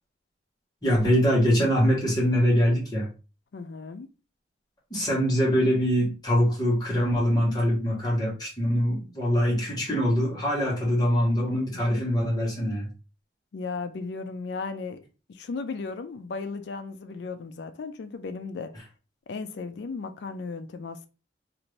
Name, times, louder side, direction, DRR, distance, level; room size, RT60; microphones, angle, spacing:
voice 1, 0.8-3.1 4.9-12.9, equal, 20° left, 1.2 m, -23 dB
voice 2, 3.5-4.1 13.5-15.0 15.3-18.7 19.3-21.1, left 4 dB, 70° left, 0.4 m, -35 dB
2.7 x 2.5 x 3.1 m
head